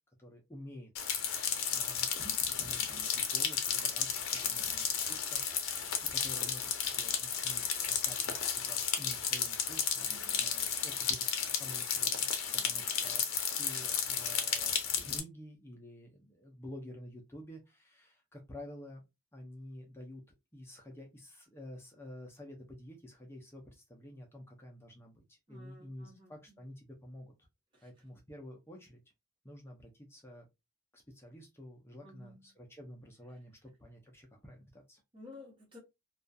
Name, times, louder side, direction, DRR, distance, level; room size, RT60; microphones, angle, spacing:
voice 1, 0.2-5.8 6.1-12.3 12.6-19.0 19.3-20.2 20.5-27.3 27.8-29.0 29.4-30.5 30.9-35.0, left 1 dB, 10° left, 0.4 m, -50 dB
sound 1, 1.0-15.2, left 7 dB, 70° left, 0.5 m, -33 dB
voice 2, 2.8-3.1 4.4-4.8 10.1-10.5 12.6-12.9 25.5-26.6 27.7-27.9 32.0-32.6 35.1-35.8, left 1 dB, 20° right, 1.0 m, -55 dB
2.4 x 2.2 x 2.5 m
head